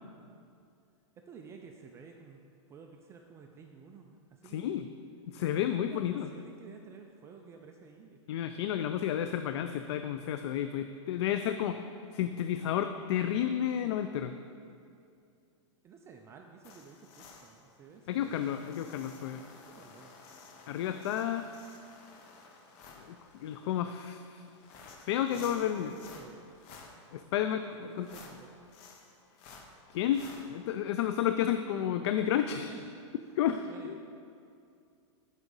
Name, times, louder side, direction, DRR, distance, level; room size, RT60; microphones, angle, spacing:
voice 1, 1.3-2.4 2.7-4.8 5.4-8.2 15.8-18.5 19.7-20.1 25.3-26.4 27.4-27.5 27.8-28.5 32.5-32.9 33.2-33.3 33.6-34.0, right 6 dB, 15° right, 3 dB, 0.3 m, -51 dB
voice 2, 4.5-4.9 5.3-6.3 8.3-11.8 12.1-14.3 18.1-19.4 20.7-21.5 23.0-24.4 25.0-25.9 27.1-27.6 28.0-28.1 29.9-32.7 33.4-34.0, left 10 dB, 60° left, 9 dB, 0.4 m, -31 dB
sound 1, 16.6-30.5, left 4 dB, 40° left, 0.9 m, -54 dB
8.2 x 4.9 x 5.4 m, 2.5 s
hypercardioid pair, 145°, 16 cm